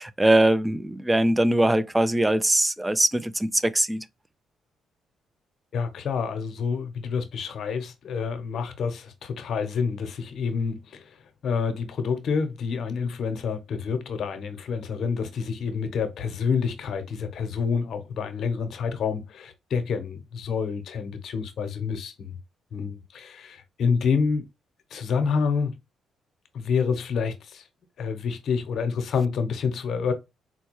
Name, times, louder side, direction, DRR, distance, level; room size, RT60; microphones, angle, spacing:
voice 1, 0.0-4.0, right 1 dB, 10° right, 0.3 m, -22 dB
voice 2, 5.7-11.2 11.4-22.4 22.7-24.4 24.9-25.7 26.5-27.6 28.0-30.1, left 5 dB, 65° left, 0.8 m, -28 dB
4.2 x 2.2 x 3.0 m
cardioid pair, 90°, 0 cm